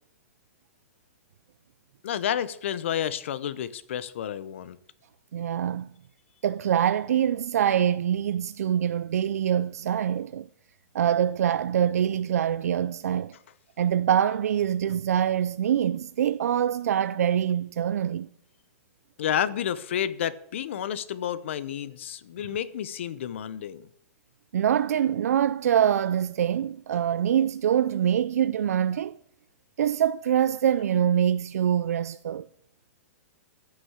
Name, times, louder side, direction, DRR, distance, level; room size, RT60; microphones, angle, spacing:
voice 1, 2.0-4.8 19.2-23.9, left 10 dB, 55° left, 0.8 m, -30 dB
voice 2, 5.3-5.9 6.4-10.5 10.9-13.3 13.8-18.3 24.5-29.2 29.8-32.5, right 9 dB, 85° right, 0.4 m, -24 dB
14.5 x 6.4 x 8.0 m
hypercardioid pair, 175°, 8 cm